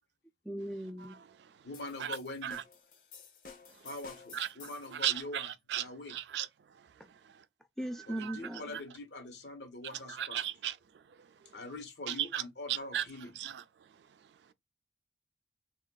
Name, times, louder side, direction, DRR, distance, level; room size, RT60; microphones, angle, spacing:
voice 1, 0.4-1.2 7.8-8.7, right 1 dB, ahead, 0.3 m, -38 dB
voice 2, 1.6-2.6 3.8-6.1 8.1-10.4 11.5-13.3, left 2 dB, 80° left, 1.1 m, -44 dB
sound 1, 1.7-5.0, left 6 dB, 50° left, 0.7 m, -53 dB
voice 3, 4.3-7.0 8.1-8.4 8.7-8.8 9.9-11.6 12.1-12.4 12.7-13.0 13.4-14.5, right 11 dB, 75° right, 0.4 m, -37 dB
3.6 x 2.4 x 2.2 m
head